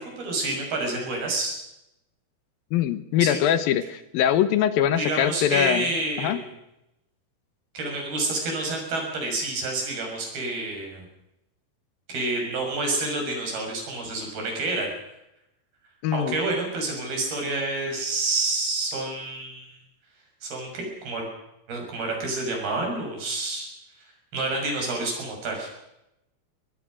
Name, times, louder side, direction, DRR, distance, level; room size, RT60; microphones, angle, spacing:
voice 1, 0.0-1.6 3.2-3.4 4.9-6.5 7.7-11.1 12.1-14.9 16.1-19.8 20.4-21.3 21.7-23.7 24.3-25.7, right 2 dB, 75° right, 1 dB, 8.2 m, -28 dB
voice 2, 2.7-5.9 6.2-6.4 16.0-16.4, left 10 dB, 75° left, 13 dB, 2.6 m, -23 dB
23.5 x 19.5 x 6.3 m, 0.87 s
omnidirectional pair, 4.4 m